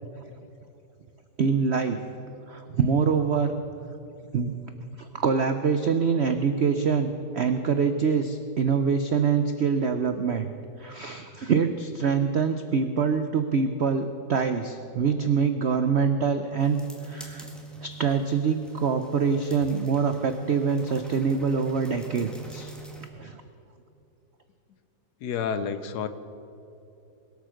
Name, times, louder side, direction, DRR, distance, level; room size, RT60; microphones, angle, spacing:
voice 1, 1.4-2.0 2.5-3.6 4.3-4.6 4.9-10.5 10.8-16.8 17.0-17.5 17.8-22.7 23.1-23.4, right 6 dB, 80° right, 8 dB, 0.6 m, -25 dB
sound 1, 16.6-23.1, right 3 dB, ahead, 1.6 m, -43 dB
voice 2, 25.2-26.1, left 7 dB, 65° left, 11 dB, 1.2 m, -29 dB
22.0 x 8.2 x 6.4 m, 2.8 s
omnidirectional pair, 2.0 m